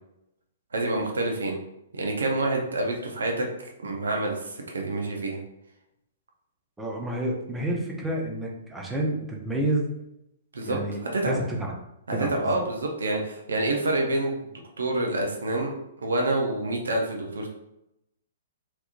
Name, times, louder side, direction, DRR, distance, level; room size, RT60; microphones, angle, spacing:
voice 1, 0.7-1.6 1.9-3.5 3.8-5.4 10.5-11.4 12.1-14.5 14.8-15.7 16.0-17.5, right 2 dB, 65° right, 1 dB, 0.7 m, -27 dB
voice 2, 6.8-9.9 10.6-11.0 11.2-11.7 12.1-12.5, right 1 dB, 5° right, -2 dB, 0.7 m, -29 dB
3.5 x 3.0 x 2.5 m, 0.84 s
figure-of-eight pair, 115°, 0 cm